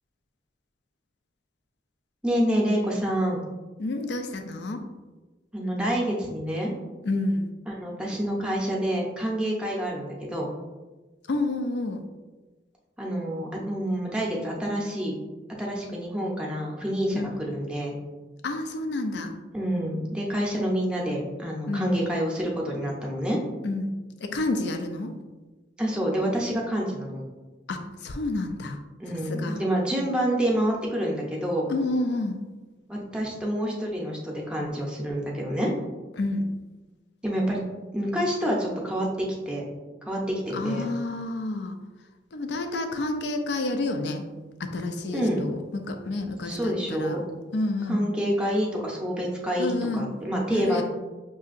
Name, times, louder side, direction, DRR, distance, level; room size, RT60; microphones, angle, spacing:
voice 1, 2.2-3.4 5.5-6.7 7.7-10.5 13.0-15.1 15.6-18.0 19.5-23.4 25.8-27.2 29.0-31.7 32.9-35.7 37.2-37.6 37.9-39.1 39.5-39.6 40.0-40.9 45.1-45.4 46.4-47.2 47.9-50.8, equal, 5° right, -3 dB, 0.6 m, -27 dB
voice 2, 3.8-4.8 7.0-7.5 11.3-12.0 17.1-17.4 18.4-19.4 21.6-21.9 23.6-23.9 24.2-25.1 27.7-28.8 29.1-29.6 31.7-32.4 36.2-36.5 40.5-41.8 42.3-44.2 44.6-47.2 47.5-48.1 49.6-50.1 50.5-50.8, left 2 dB, 70° left, 6 dB, 0.4 m, -29 dB
5.6 x 2.7 x 2.5 m, 1.2 s
head